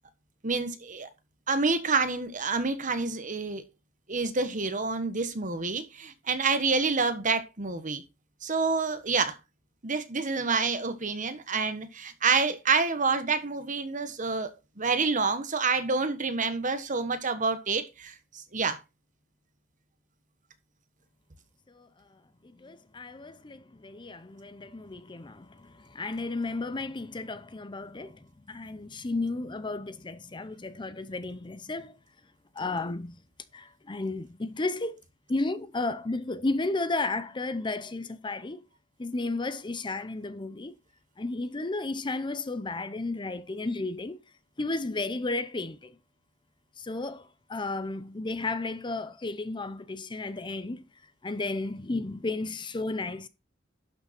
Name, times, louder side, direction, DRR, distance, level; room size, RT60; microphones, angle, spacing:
voice 1, 0.4-1.1 1.5-3.6 4.1-8.0 8.4-9.4 9.8-14.5 14.8-18.8, right 4 dB, 40° right, 1.4 m, -28 dB
voice 2, 22.6-25.5 25.9-28.1 28.5-31.9 32.6-33.2 33.5-34.9 35.3-38.6 39.0-40.7 41.2-44.2 44.6-45.9 46.8-47.2 47.5-50.8 51.2-53.3, left 2 dB, 25° left, 0.6 m, -33 dB
11.5 x 6.2 x 4.3 m
head